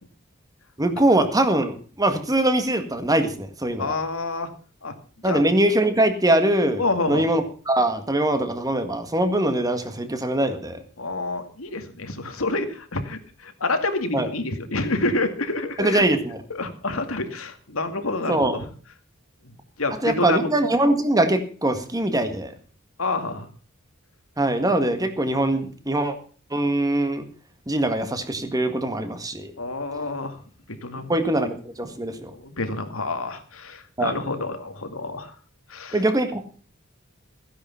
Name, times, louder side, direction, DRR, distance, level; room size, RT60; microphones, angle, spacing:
voice 1, 0.8-4.0 5.2-10.8 14.1-14.3 15.8-16.4 18.2-18.6 20.0-22.5 24.4-26.1 26.5-27.2 27.7-29.5 31.1-32.3 34.0-34.2 35.9-36.4, right 1 dB, 20° right, 8 dB, 1.8 m, -22 dB
voice 2, 3.8-4.5 4.8-4.9 5.2-5.4 6.8-7.3 11.0-16.0 16.5-18.6 19.8-20.4 23.0-23.5 29.6-30.4 30.7-31.1 32.3-35.3 35.7-36.0, left 2 dB, 85° left, 7 dB, 2.3 m, -28 dB
15.5 x 10.0 x 5.7 m, 0.41 s
head